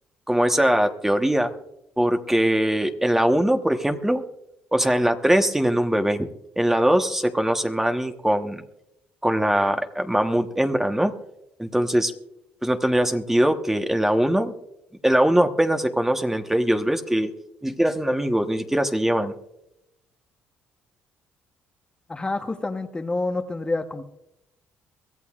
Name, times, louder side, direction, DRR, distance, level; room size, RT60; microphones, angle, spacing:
voice 1, 0.3-1.5 2.0-4.2 4.7-6.3 6.6-8.6 9.2-11.1 11.6-12.1 12.6-14.5 15.0-17.3 17.6-19.3, right 1 dB, 10° right, 6 dB, 1.1 m, -21 dB
voice 2, 22.1-24.0, left 2 dB, 20° left, 6 dB, 1.0 m, -28 dB
23.0 x 14.5 x 2.4 m, 0.84 s
supercardioid pair, 80°, 4 cm